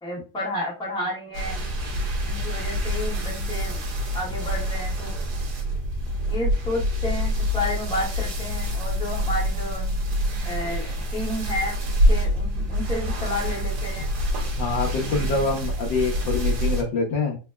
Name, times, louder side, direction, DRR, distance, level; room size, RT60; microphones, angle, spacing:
voice 1, 0.0-1.6 2.3-3.8 4.1-5.2 6.3-9.8 10.4-11.8 12.1-14.1, left 1 dB, 5° left, -5 dB, 1.4 m, -31 dB
sound 1, 1.3-16.8, equal, 60° right, 1.5 m, -26 dB
voice 2, 14.6-17.4, left 4 dB, 70° left, 0 dB, 1.6 m, -25 dB
4.0 x 3.3 x 2.2 m, 0.32 s
omnidirectional pair, 2.2 m